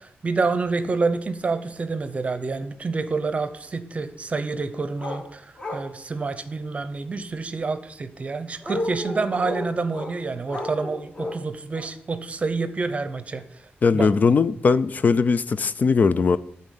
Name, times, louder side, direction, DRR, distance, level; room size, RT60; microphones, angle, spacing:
voice 1, 0.0-13.4 13.9-14.4, right 4 dB, 35° right, 0.7 m, -28 dB
sound 1, 5.0-5.2 5.6-5.9 8.6-10.1 10.5-11.4 11.7-11.9, left 1 dB, 25° left, 1.3 m, -32 dB
voice 2, 13.8-16.4, left 5 dB, 40° left, 0.4 m, -19 dB
12.0 x 4.2 x 8.2 m
wide cardioid pair, 175°, 4 cm